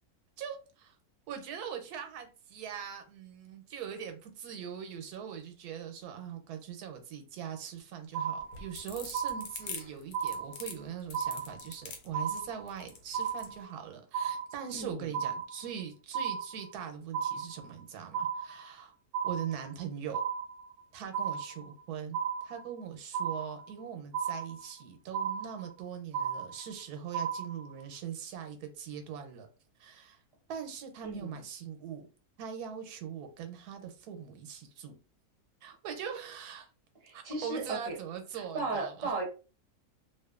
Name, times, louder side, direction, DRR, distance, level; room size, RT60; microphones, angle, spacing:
voice 1, 0.4-1.0 1.3-18.9 19.2-20.2 20.9-29.5 29.8-30.2 30.5-32.1 32.4-34.9 35.6-36.7 37.1-39.1, right 8 dB, 90° right, 1.1 m, -41 dB
sound 1, 8.1-8.8 9.1-9.8 10.1-10.8 11.1-11.8 12.1-12.8 13.1-13.8 14.1-14.8 15.1-15.8 16.1-16.8 17.1-17.8 18.1-18.8 19.1-19.8 20.1-20.8 21.1-21.8 22.1-22.8 23.1-23.8 24.1-24.8 25.1-25.8 26.1-26.8 27.1-27.8, right 7 dB, 65° right, 0.8 m, -34 dB
sound 2, 8.4-13.5, left 5 dB, 80° left, 1.1 m, -43 dB
voice 2, 14.7-15.1 31.0-31.4 37.0-38.0 38.3-39.2, right 3 dB, 30° right, 0.8 m, -36 dB
2.5 x 2.4 x 2.3 m
omnidirectional pair, 1.6 m